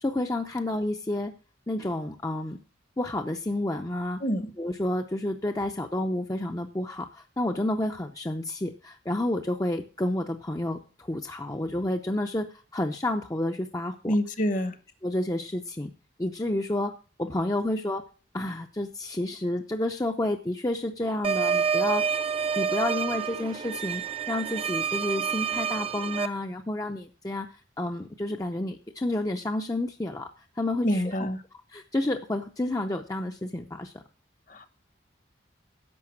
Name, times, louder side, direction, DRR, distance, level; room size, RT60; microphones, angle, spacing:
voice 1, 0.0-1.3 1.7-2.6 3.0-4.2 4.6-14.1 15.0-15.9 16.2-16.9 17.2-18.0 18.3-22.0 22.6-24.0 24.3-27.5 27.8-30.3 30.6-31.2 31.7-33.9, left 1 dB, 20° left, 0.6 m, -30 dB
voice 2, 14.1-14.8 30.8-31.4 34.5-34.7, equal, 40° left, 1.0 m, -26 dB
sound 1, 21.2-26.3, right 6 dB, 30° right, 0.5 m, -28 dB
11.0 x 6.8 x 7.3 m
head